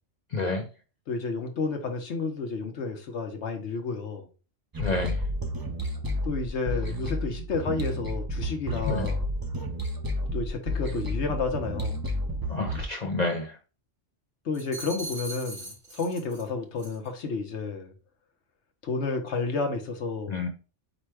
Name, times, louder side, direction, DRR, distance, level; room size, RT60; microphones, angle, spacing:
voice 1, 0.3-0.6 4.8-5.2 8.9-9.1 12.5-13.6 20.3-20.5, left 3 dB, 50° left, 0.6 m, -29 dB
voice 2, 1.1-4.2 6.2-9.3 10.3-12.0 14.4-17.9 18.8-20.4, left 4 dB, 65° left, 1.1 m, -31 dB
sound 1, 4.7-12.8, equal, 25° right, 0.5 m, -31 dB
sound 2, 14.5-16.5 16.8-17.1, right 1 dB, 80° right, 2.8 m, -40 dB
5.1 x 2.2 x 4.6 m
omnidirectional pair, 1.3 m